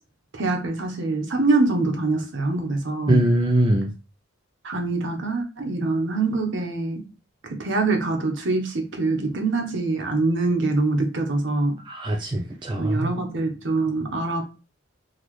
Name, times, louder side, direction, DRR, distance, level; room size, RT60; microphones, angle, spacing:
voice 1, 0.3-3.2 4.6-7.0 7.4-11.7 12.8-14.5, right 3 dB, 60° right, 3 dB, 0.9 m, -24 dB
voice 2, 3.1-3.9 11.9-13.1, right 1 dB, 20° right, 1 dB, 0.4 m, -22 dB
3.9 x 2.4 x 3.1 m, 0.32 s
head